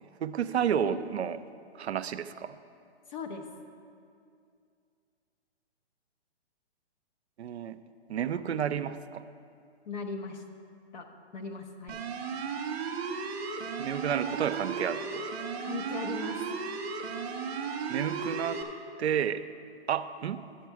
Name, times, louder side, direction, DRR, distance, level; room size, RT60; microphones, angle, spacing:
voice 1, 0.2-1.4 1.8-2.5 7.4-7.8 8.1-9.2 13.8-15.3 17.9-18.6 19.0-19.4 19.9-20.4, right 8 dB, 85° right, 11 dB, 0.5 m, -31 dB
voice 2, 0.8-1.2 3.1-3.5 9.9-10.4 10.9-12.0 15.6-16.5, left 4 dB, 45° left, 4 dB, 1.0 m, -39 dB
sound 1, 11.9-18.6, right 5 dB, 10° right, 0.5 m, -35 dB
11.5 x 7.3 x 4.6 m, 2.4 s
hypercardioid pair, 145°, 32 cm